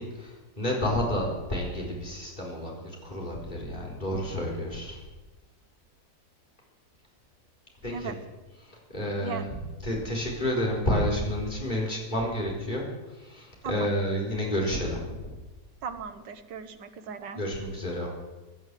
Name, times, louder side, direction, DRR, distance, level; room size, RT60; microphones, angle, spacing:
voice 1, 0.0-5.0 7.8-8.1 8.6-9.4 9.8-15.3 17.4-18.1, equal, 25° left, -3 dB, 4.4 m, -30 dB
voice 2, 15.8-17.4, right 6 dB, 80° right, 9 dB, 1.8 m, -37 dB
17.5 x 11.0 x 7.5 m, 1.2 s
omnidirectional pair, 1.9 m